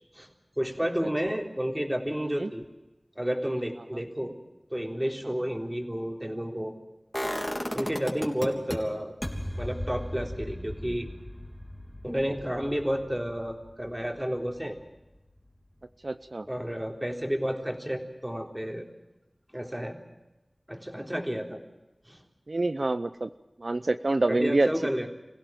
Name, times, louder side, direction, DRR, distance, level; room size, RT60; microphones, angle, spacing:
voice 1, 0.6-2.6 3.2-4.4 4.7-6.7 7.7-9.1 9.6-11.1 12.0-14.8 16.5-18.9 19.5-20.0 20.7-21.6 22.1-22.2 24.3-25.1, equal, 15° right, 2 dB, 3.7 m, -31 dB
sound 1, 7.1-8.8 9.2-15.1 15.4-15.5, equal, 10° left, 3.5 m, -36 dB
voice 2, 16.0-16.5 22.5-23.3 23.6-24.7, right 2 dB, 65° right, 11 dB, 0.7 m, -26 dB
26.5 x 16.0 x 7.6 m, 1.0 s
wide cardioid pair, 45°, 0 cm